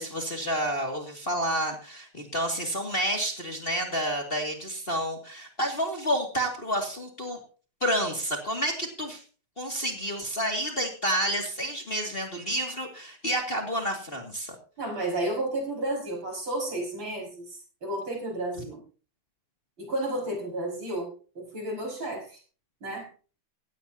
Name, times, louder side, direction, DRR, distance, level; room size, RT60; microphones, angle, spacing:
voice 1, 0.0-7.4 7.8-9.2 9.6-14.6, equal, 25° left, 1 dB, 2.3 m, -29 dB
voice 2, 14.8-17.4 17.8-18.8 19.8-22.4 22.8-23.1, right 1 dB, 60° right, 0 dB, 6.5 m, -32 dB
17.0 x 16.0 x 2.8 m, 0.39 s
omnidirectional pair, 2.4 m